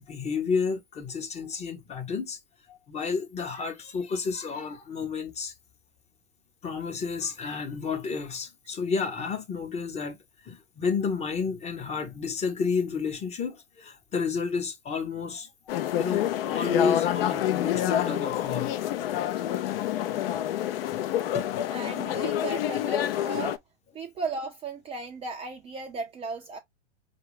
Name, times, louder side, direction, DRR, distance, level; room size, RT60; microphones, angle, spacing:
voice 1, 0.0-2.4 2.7-5.5 6.6-10.2 10.4-15.5 16.0-18.7 20.4-20.5 21.3-21.5, left 5 dB, 20° left, 0.8 m, -31 dB
sound 1, 15.7-23.6, left 11 dB, 55° left, 0.6 m, -27 dB
voice 2, 21.7-23.6 23.9-26.6, right 4 dB, 15° right, 0.5 m, -36 dB
4.6 x 2.5 x 3.1 m
hypercardioid pair, 110°, 34 cm